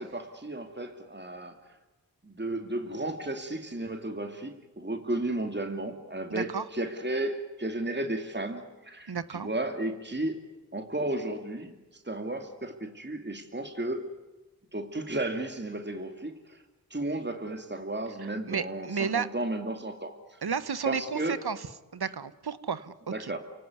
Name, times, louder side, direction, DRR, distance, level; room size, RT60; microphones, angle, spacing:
voice 1, 0.0-1.6 2.2-10.4 10.7-11.7 12.0-14.1 14.7-16.6 16.9-20.4 20.9-21.4 23.1-23.4, right 1 dB, 30° right, 6 dB, 2.6 m, -33 dB
voice 2, 9.1-9.5 18.2-19.3 20.4-21.6 21.9-22.9 23.2-23.3, right 6 dB, 90° right, 15 dB, 1.2 m, -32 dB
29.5 x 18.0 x 9.6 m, 1.1 s
cardioid pair, 40°, 37 cm